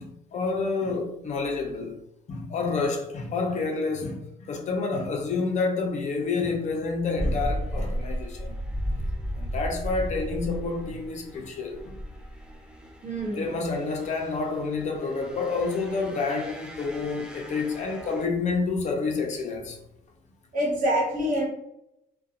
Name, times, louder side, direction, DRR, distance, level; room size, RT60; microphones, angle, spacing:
voice 1, 0.0-2.0 2.3-8.5 9.4-12.0 13.2-19.8, left 4 dB, 45° left, 0.5 m, -29 dB
sound 1, 7.1-18.3, equal, 5° right, 0.5 m, -35 dB
voice 2, 13.0-13.5 20.5-21.5, equal, 55° right, 1.2 m, -26 dB
2.4 x 2.2 x 2.7 m
cardioid pair, 110°, 17 cm